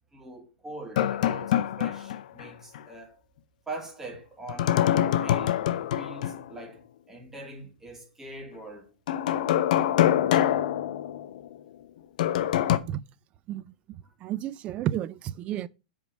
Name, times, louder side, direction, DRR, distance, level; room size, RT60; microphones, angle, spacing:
voice 1, 0.1-3.2 3.7-5.7 6.0-9.0 14.0-14.1, right 2 dB, 10° right, 1.4 m, -43 dB
sound 1, 1.0-2.5 2.7-2.8 4.5-6.5 9.1-11.6 12.2-12.8, left 11 dB, 55° left, 0.6 m, -25 dB
voice 2, 13.9-15.7, right 12 dB, 25° right, 0.3 m, -32 dB
5.0 x 4.6 x 5.4 m
hypercardioid pair, 150°, 5 cm